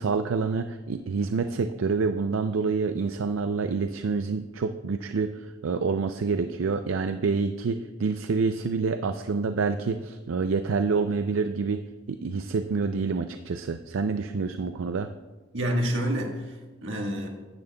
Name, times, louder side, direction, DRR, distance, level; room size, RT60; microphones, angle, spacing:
voice 1, 0.0-11.8 12.1-15.1, right 4 dB, 85° right, 8 dB, 0.4 m, -27 dB
voice 2, 15.5-17.3, equal, 70° right, 2 dB, 1.5 m, -28 dB
15.5 x 10.5 x 2.3 m, 1.3 s
head